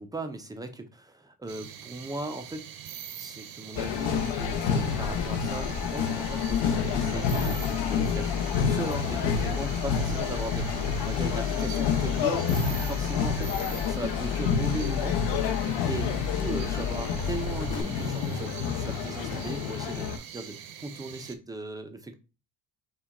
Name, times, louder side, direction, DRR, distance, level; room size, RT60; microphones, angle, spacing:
voice 1, 0.0-2.6 3.2-7.6 7.9-10.6 11.1-13.5 13.9-20.5 20.8-22.1, right 2 dB, 10° right, 6 dB, 0.3 m, -38 dB
sound 1, 1.5-21.3, right 9 dB, 60° right, 0.7 m, -43 dB
sound 2, 3.8-20.2, left 7 dB, 85° left, 0.8 m, -29 dB
sound 3, 6.5-17.8, left 7 dB, 55° left, 0.7 m, -33 dB
5.7 x 2.2 x 3.6 m, 0.31 s
cardioid pair, 165°, 42 cm